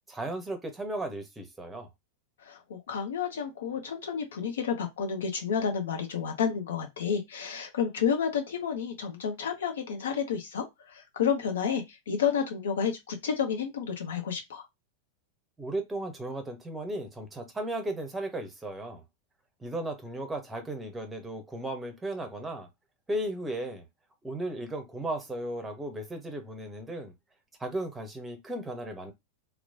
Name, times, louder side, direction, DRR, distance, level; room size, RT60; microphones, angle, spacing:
voice 1, 0.1-1.9 15.6-19.0 19.6-22.7 23.1-23.8 24.2-27.1 27.6-29.1, right 1 dB, 10° right, 0.7 m, -35 dB
voice 2, 2.5-14.6, left 7 dB, 60° left, 0.7 m, -30 dB
3.0 x 2.0 x 2.6 m
figure-of-eight pair, 90°, 0 cm